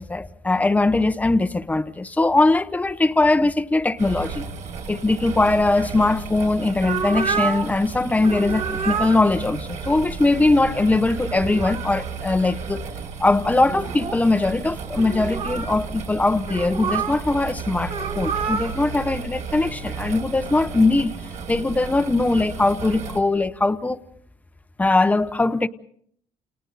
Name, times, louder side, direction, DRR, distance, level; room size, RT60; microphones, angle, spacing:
voice 1, 0.0-4.5 4.9-12.8 13.2-21.1 21.5-24.0 24.8-25.7, left 2 dB, 10° left, 0.9 m, -21 dB
sound 1, 4.0-23.2, right 5 dB, 65° right, 5.2 m, -34 dB
sound 2, 6.8-7.7 8.2-9.2 11.2-12.1 13.0-13.1 13.5-14.2 15.0-15.8 16.5-17.2 17.8-18.7, right 6 dB, 40° right, 2.1 m, -28 dB
29.5 x 29.5 x 4.1 m
cardioid pair, 130°, 13 cm